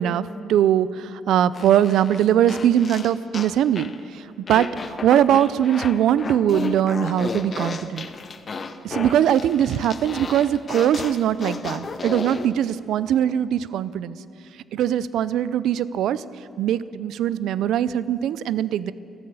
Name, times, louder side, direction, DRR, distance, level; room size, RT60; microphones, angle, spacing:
voice 1, 0.0-8.1 8.8-14.2 14.7-16.2 16.6-18.9, right 10 dB, 80° right, 17 dB, 0.4 m, -21 dB
sound 1, 1.5-4.0 4.5-12.5, left 4 dB, 30° left, 0.7 m, -33 dB
13.5 x 13.0 x 8.0 m, 2.7 s
cardioid pair, 165°, 0 cm